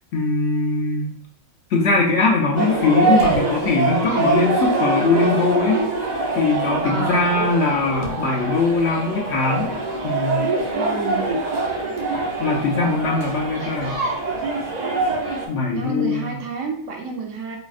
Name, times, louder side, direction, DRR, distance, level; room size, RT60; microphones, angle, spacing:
voice 1, 0.1-1.1 1.7-5.8 6.3-9.7 10.0-10.5 12.4-14.0 15.5-16.4, left 3 dB, 65° left, -1 dB, 0.8 m, -21 dB
sound 1, 2.6-15.5, right 3 dB, 55° right, 0.5 m, -24 dB
voice 2, 6.8-7.3 10.7-11.4 15.7-17.6, right 3 dB, 70° right, 1 dB, 0.9 m, -29 dB
4.0 x 2.0 x 2.4 m, 0.62 s
omnidirectional pair, 1.4 m